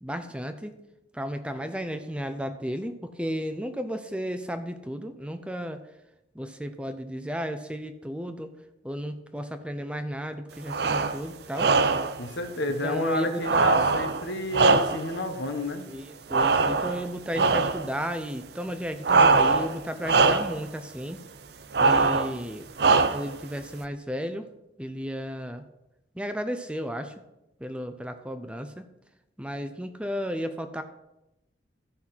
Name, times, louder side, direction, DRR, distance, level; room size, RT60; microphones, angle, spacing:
voice 1, 0.0-0.8 1.1-5.8 6.3-8.5 8.8-11.7 12.8-13.7 15.9-21.2 21.8-22.7 23.1-24.5 24.8-25.7 26.2-27.1 27.6-28.8 29.4-30.8, equal, 5° right, 8 dB, 0.5 m, -33 dB
sound 1, 10.7-11.2 11.6-12.2 13.4-15.2 16.3-17.0 17.3-17.9 19.0-19.8 20.0-20.6 21.7-22.3 22.8-23.4, right 4 dB, 60° right, 0.6 m, -22 dB
voice 2, 12.2-15.8, left 1 dB, 80° left, 6 dB, 1.3 m, -30 dB
13.0 x 5.7 x 6.0 m, 0.91 s
head